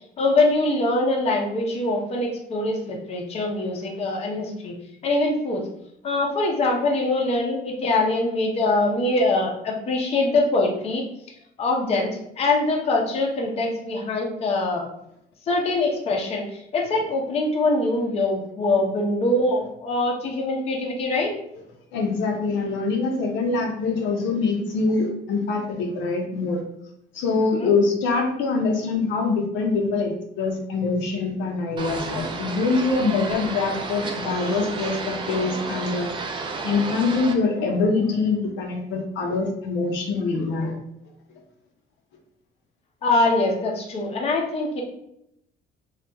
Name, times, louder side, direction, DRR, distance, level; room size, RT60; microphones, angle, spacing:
voice 1, 0.2-4.8 5.0-5.7 6.0-11.0 11.6-14.9 15.5-21.3 27.6-27.7 43.0-44.8, left 2 dB, 30° left, 0 dB, 0.6 m, -23 dB
voice 2, 21.9-26.6 27.1-36.1 36.6-40.7, left 4 dB, 75° left, 2 dB, 0.7 m, -24 dB
sound 1, 31.8-37.3, right 4 dB, 25° right, 0.4 m, -32 dB
2.9 x 2.4 x 3.3 m, 0.78 s
cardioid pair, 145°, 19 cm